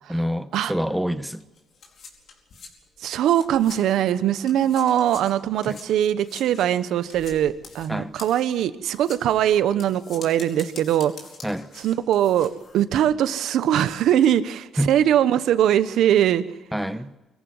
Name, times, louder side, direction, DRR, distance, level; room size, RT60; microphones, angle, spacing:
voice 1, 0.1-1.4 5.7-5.8 7.9-8.1 11.4-11.7 14.8-14.9 16.7-17.1, equal, 5° right, 1.2 m, -26 dB
sound 1, 1.3-4.1 4.4-12.8, left 4 dB, 60° left, 4.6 m, -45 dB
voice 2, 3.0-11.1 11.7-16.4, right 10 dB, 80° right, 1.1 m, -21 dB
24.5 x 15.0 x 7.9 m
cardioid pair, 90°, 0 cm